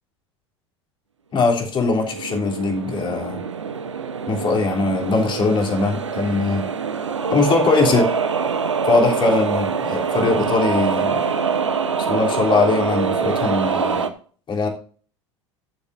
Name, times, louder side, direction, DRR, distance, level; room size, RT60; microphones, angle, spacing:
voice 1, 1.3-3.4 4.3-6.7 7.3-8.1 8.8-11.2 12.0-14.1 14.5-14.7, left 3 dB, 35° left, 1 dB, 3.3 m, -21 dB
sound 1, 1.6-14.1, right 6 dB, 85° right, 1.0 m, -24 dB
18.5 x 7.2 x 2.7 m, 0.43 s
figure-of-eight pair, 75°, 15 cm